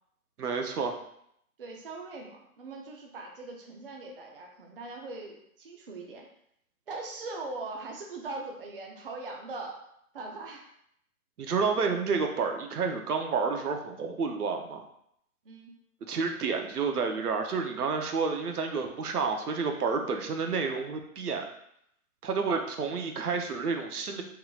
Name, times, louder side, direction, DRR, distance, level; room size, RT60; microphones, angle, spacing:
voice 1, 0.4-1.0 11.4-14.8 16.1-21.4 22.2-24.2, right 5 dB, 90° right, 4 dB, 0.9 m, -30 dB
voice 2, 1.6-6.3 6.9-9.8 10.1-10.6 15.4-15.7 22.9-23.0, right 3 dB, 40° right, 1 dB, 0.5 m, -41 dB
4.4 x 3.8 x 2.4 m, 0.72 s
hypercardioid pair, 165°, 44 cm